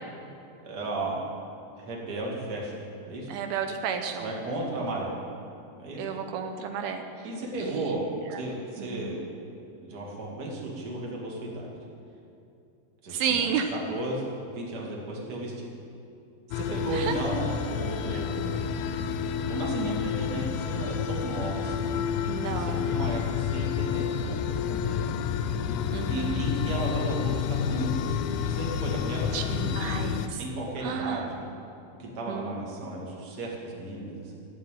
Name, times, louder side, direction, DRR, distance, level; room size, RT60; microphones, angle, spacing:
voice 1, 0.6-1.2 1.8-2.7 3.0-3.3 4.2-5.1 5.8-6.0 7.2-8.0 8.4-9.2 9.8-11.7 13.0-15.7 16.5-18.6 19.5-21.9 22.4-24.4 24.7-25.1 26.1-27.9 28.5-29.8 30.4-31.4 32.0-34.4, right 2 dB, 30° right, -3 dB, 2.3 m, -34 dB
voice 2, 3.3-4.3 6.0-7.1 7.6-7.9 8.8-9.2 13.1-13.7 16.9-17.1 18.1-18.2 22.3-23.2 25.9-26.4 29.3-30.4 30.8-31.3 32.1-32.6, right 7 dB, 80° right, 6 dB, 2.6 m, -32 dB
sound 1, 16.5-30.3, left 8 dB, 90° left, 2.5 m, -29 dB
15.0 x 8.3 x 9.1 m, 2.7 s
omnidirectional pair, 4.4 m